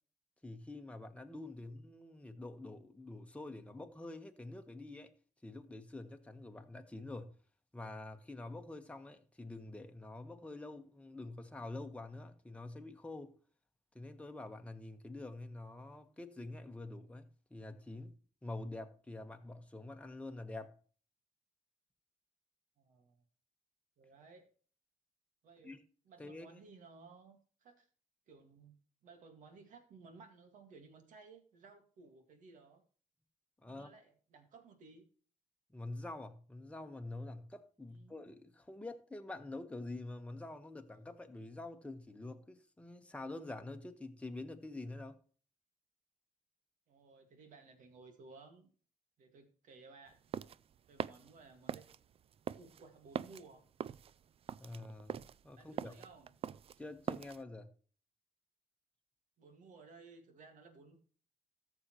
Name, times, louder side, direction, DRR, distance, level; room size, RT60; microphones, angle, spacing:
voice 1, 0.4-5.1 5.4-7.3 7.7-13.4 13.9-18.1 18.4-20.8 25.6-25.8 26.2-26.6 33.6-33.9 35.7-45.2 54.6-55.9 56.8-57.7, left 2 dB, 10° left, 1.3 m, -47 dB
voice 2, 22.8-23.2 24.0-24.5 25.4-25.8 26.1-27.9 28.3-28.8 29.0-32.8 33.6-35.1 37.9-38.2 46.9-48.7 49.2-50.2 50.9-51.9 52.5-53.6 55.5-56.3 59.4-61.0, right 4 dB, 75° right, 2.0 m, -58 dB
sound 1, 50.1-57.4, right 8 dB, 45° right, 0.4 m, -43 dB
14.0 x 6.9 x 3.1 m
cardioid pair, 90°, 13 cm